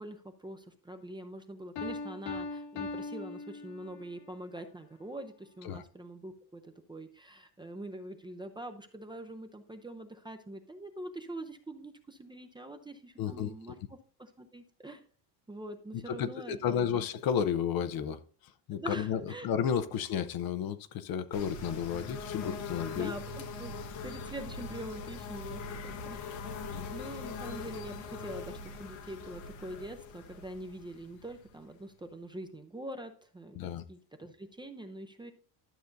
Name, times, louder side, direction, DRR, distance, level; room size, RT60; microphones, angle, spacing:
voice 1, 0.0-15.0 15.5-17.0 18.7-19.5 22.9-23.7 24.0-26.5 26.9-35.3, right 1 dB, 10° right, 0.5 m, -44 dB
Piano, 1.8-4.2, left 3 dB, 75° left, 1.9 m, -40 dB
voice 2, 13.2-13.5 16.1-23.1 26.7-26.9 33.5-33.8, left 8 dB, 50° left, 0.6 m, -32 dB
sound 1, 21.3-31.9, left 4 dB, 90° left, 1.6 m, -42 dB
12.0 x 6.6 x 2.6 m
cardioid pair, 125°, 49 cm